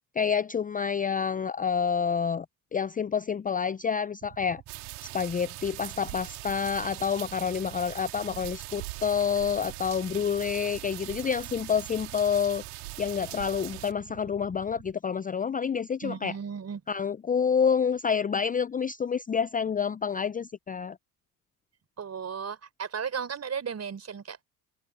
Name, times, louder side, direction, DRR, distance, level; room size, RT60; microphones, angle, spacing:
voice 1, 0.2-2.5 2.7-4.6 5.0-12.6 13.0-16.3 16.9-21.0, left 6 dB, 20° left, 0.6 m, -28 dB
Motorcycle / Idling, 4.2-14.9, right 13 dB, 55° right, 7.1 m, -50 dB
sound 1, 4.7-13.9, right 23 dB, 75° right, 3.2 m, -41 dB
voice 2, 16.0-16.8 22.0-24.4, right 7 dB, 35° right, 4.2 m, -35 dB
hypercardioid pair, 70°, 45 cm